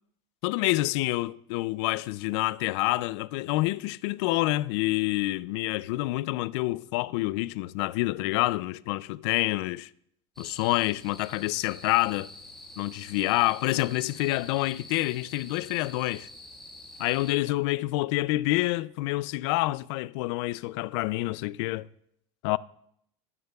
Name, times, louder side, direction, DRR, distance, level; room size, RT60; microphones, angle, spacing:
voice 1, 0.4-9.9 10.4-12.3 12.8-16.3 17.0-21.9 22.4-22.6, left 19 dB, 70° left, 0.4 m, -27 dB
sound 1, 10.4-17.3, left 1 dB, ahead, 1.5 m, -47 dB
18.5 x 10.5 x 2.3 m
cardioid pair, 155°, 15 cm